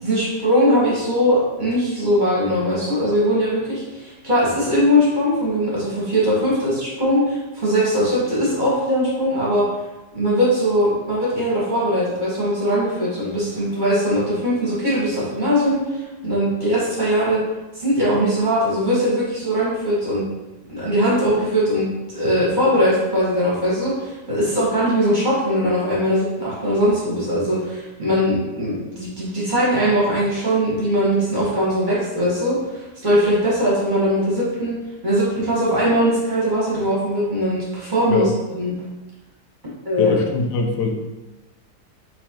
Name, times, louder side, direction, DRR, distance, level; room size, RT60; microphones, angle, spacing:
voice 1, 0.0-9.6 10.1-17.4 17.7-20.2 20.7-34.8 35.0-38.3 38.6-38.7 39.8-40.2, equal, 30° right, -7 dB, 1.3 m, -20 dB
voice 2, 40.0-40.9, left 4 dB, 80° left, 2 dB, 1.2 m, -22 dB
4.0 x 4.0 x 2.9 m, 1.1 s
omnidirectional pair, 1.8 m